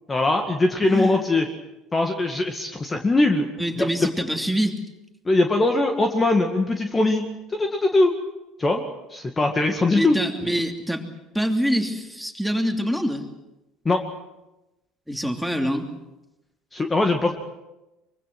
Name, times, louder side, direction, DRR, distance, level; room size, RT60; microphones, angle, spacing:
voice 1, 0.1-1.5 1.9-3.5 3.8-3.9 5.3-8.1 8.6-8.8 9.1-10.2 13.9-14.0 16.7-17.3, left 2 dB, 20° left, 4 dB, 2.2 m, -21 dB
voice 2, 0.8-1.2 3.6-4.8 9.9-11.0 11.3-13.2 15.1-15.9, equal, ahead, 3 dB, 3.1 m, -25 dB
24.0 x 24.0 x 6.3 m, 0.99 s
figure-of-eight pair, 65°, 0 cm